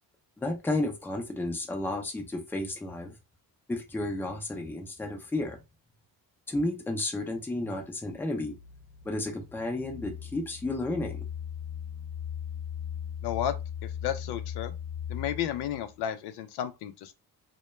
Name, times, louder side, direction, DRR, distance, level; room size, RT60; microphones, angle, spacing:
voice 1, 0.4-3.1 3.7-5.6 6.5-8.6 9.0-11.2, left 2 dB, 5° left, 0.4 m, -32 dB
sound 1, 8.5-15.9, left 9 dB, 40° left, 0.7 m, -39 dB
voice 2, 13.2-13.5 13.8-14.7 15.1-17.1, left 10 dB, 85° left, 0.5 m, -33 dB
2.2 x 2.1 x 3.0 m
cardioid pair, 145°, 38 cm